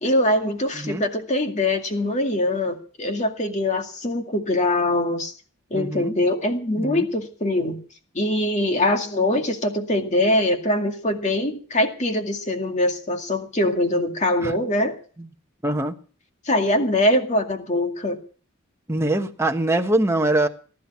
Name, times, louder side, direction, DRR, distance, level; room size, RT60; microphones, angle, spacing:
voice 1, 0.0-5.3 5.7-7.8 8.1-15.0 16.5-18.2, left 1 dB, 35° left, 2.2 m, -23 dB
voice 2, 0.7-1.1 5.7-6.1 6.8-7.1 14.4-14.5 15.2-15.3 15.6-15.9 18.9-20.5, right 1 dB, 15° right, 1.2 m, -23 dB
19.5 x 11.0 x 6.0 m
head